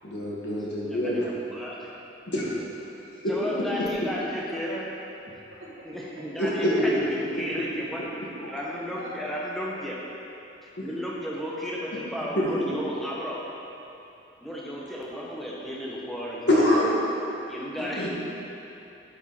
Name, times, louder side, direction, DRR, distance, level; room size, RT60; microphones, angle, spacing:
voice 1, 0.0-1.3 2.3-2.6 3.2-3.3 6.4-7.0 10.8-10.9 12.4-12.5 16.5-16.9 17.8-18.1, left 1 dB, 60° left, -6 dB, 2.0 m, -25 dB
voice 2, 0.8-1.2 1.5-1.9 3.3-4.9 5.8-6.9 7.3-8.0 8.5-10.0 10.8-13.4 14.4-16.4 17.5-18.1, equal, ahead, -5 dB, 1.2 m, -34 dB
voice 3, 5.3-6.2 6.6-6.8 8.4-9.3, equal, 85° right, -6 dB, 2.0 m, -44 dB
10.5 x 7.4 x 4.3 m, 2.9 s
head